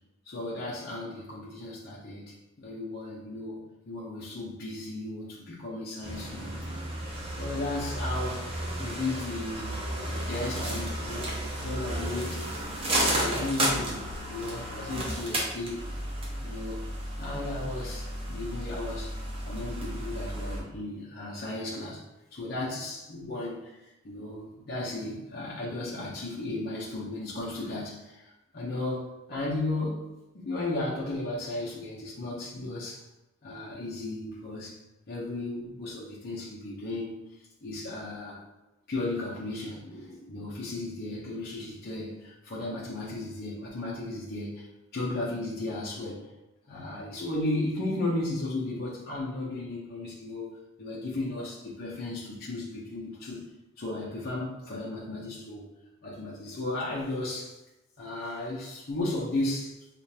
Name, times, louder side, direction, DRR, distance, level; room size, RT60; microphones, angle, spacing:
voice 1, 0.2-3.6 3.8-6.8 7.4-8.5 8.8-11.3 11.6-12.5 12.9-14.0 14.3-15.9 16.4-16.8 17.2-19.1 19.4-22.0 22.3-30.0 30.3-33.0 33.4-34.8 35.1-37.2 37.6-38.4 38.9-44.7 44.9-46.3 46.7-50.5 50.8-53.5 53.8-55.7 56.0-57.6 58.0-59.7, left 2 dB, 50° left, -6 dB, 0.8 m, -35 dB
sound 1, 6.0-20.6, right 1 dB, 30° right, 0.8 m, -33 dB
4.9 x 2.5 x 2.8 m, 0.96 s
head